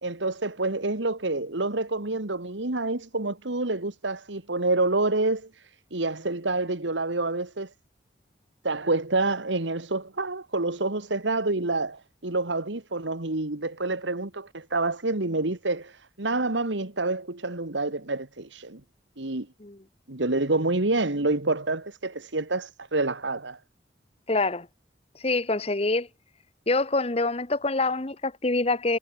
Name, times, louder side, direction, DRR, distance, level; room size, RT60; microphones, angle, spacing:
voice 1, 0.0-5.5 5.9-7.7 8.6-18.8 19.2-19.5 20.1-23.6, right 2 dB, 85° right, 2.0 m, -27 dB
voice 2, 24.3-24.7 25.2-26.1 26.7-29.0, left 2 dB, 35° left, 1.1 m, -25 dB
head